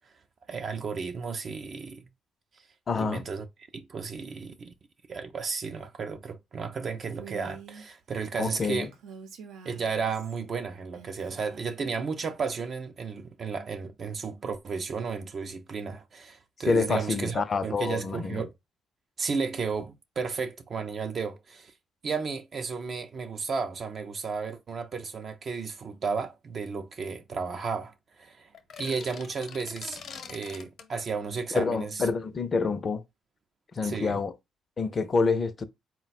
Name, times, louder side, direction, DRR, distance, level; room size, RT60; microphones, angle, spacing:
voice 1, 0.5-2.1 2.9-3.5 3.7-4.7 5.1-8.9 9.6-18.5 19.2-21.7 22.0-28.5 28.8-30.0 30.3-32.0 33.8-34.2, right 5 dB, 50° right, 0.5 m, -33 dB
voice 2, 2.9-3.2 8.4-8.9 16.7-18.4 31.5-33.0 33.7-34.3 34.8-35.6, left 4 dB, 40° left, 0.5 m, -27 dB
Female speech woman speaking, 7.2-7.9 8.9-10.4 10.9-11.8, right 6 dB, 85° right, 0.7 m, -46 dB
sound 1, 28.5-30.9, left 6 dB, 70° left, 0.9 m, -44 dB
3.9 x 2.2 x 4.1 m
cardioid pair, 90°, 0 cm